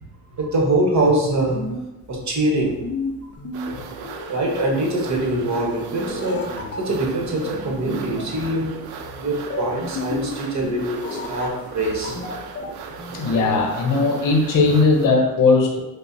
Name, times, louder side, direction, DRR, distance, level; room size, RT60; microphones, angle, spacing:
voice 1, 0.4-1.6 2.1-2.8 4.3-8.8 9.1-12.2, right 1 dB, 40° right, -1 dB, 1.1 m, -23 dB
sound 1, 1.2-13.7, left 3 dB, 30° left, 0.5 m, -33 dB
sound 2, 3.5-15.1, right 6 dB, 65° right, 0.5 m, -37 dB
voice 2, 13.1-15.8, left 3 dB, 50° left, 2 dB, 0.8 m, -18 dB
5.0 x 2.1 x 2.6 m, 0.95 s
supercardioid pair, 80°, 41 cm